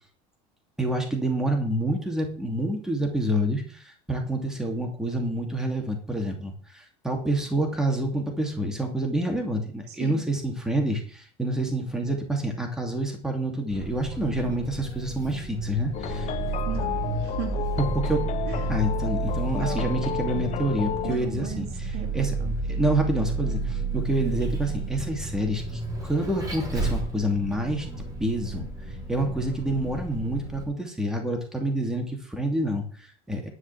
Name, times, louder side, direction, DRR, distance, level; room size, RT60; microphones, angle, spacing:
voice 1, 0.8-16.4 17.8-18.3 18.7-21.7 22.1-22.3 22.7-28.6 29.1-33.5, right 1 dB, 5° right, 2 dB, 2.7 m, -27 dB
voice 2, 9.9-10.2 16.6-17.6 18.5-18.7 19.5-19.9 21.0-22.6, right 10 dB, 60° right, 5 dB, 2.5 m, -37 dB
Vehicle, 13.7-30.6, right 3 dB, 20° right, 4.0 m, -31 dB
sound 1, 15.9-21.2, left 12 dB, 40° left, 0.8 m, -32 dB
11.5 x 6.0 x 7.5 m, 0.44 s
cardioid pair, 145°, 19 cm